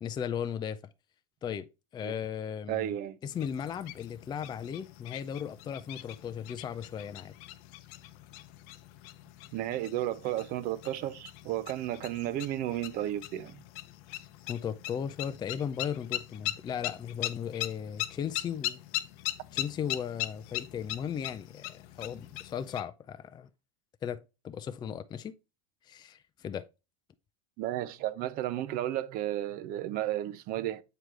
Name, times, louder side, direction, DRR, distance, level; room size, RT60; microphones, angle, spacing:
voice 1, 0.0-0.8 1.4-1.7 1.9-2.9 3.2-7.3 14.5-18.8 19.5-23.5 24.0-25.3 25.8-26.7, left 8 dB, 20° left, 0.4 m, -36 dB
voice 2, 2.7-3.2 9.5-13.6 27.6-30.8, right 13 dB, 45° right, 0.7 m, -33 dB
sound 1, 3.3-22.8, left 14 dB, 60° left, 0.7 m, -40 dB
7.8 x 4.7 x 3.3 m
hypercardioid pair, 110°, 20 cm